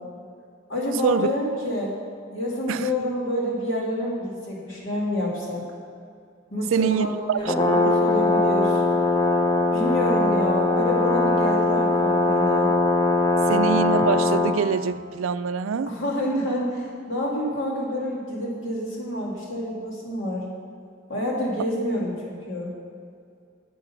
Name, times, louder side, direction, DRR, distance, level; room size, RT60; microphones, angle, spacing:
voice 1, 0.7-1.9 2.3-5.6 6.5-7.1 7.4-8.8 9.7-12.7 15.8-20.4 21.1-22.7, left 1 dB, 65° left, 2.5 m, -28 dB
voice 2, 6.7-7.9 13.5-15.9, right 6 dB, 80° right, 0.4 m, -25 dB
Brass instrument, 7.4-14.6, left 2 dB, 25° left, 0.8 m, -21 dB
9.0 x 8.3 x 5.8 m
head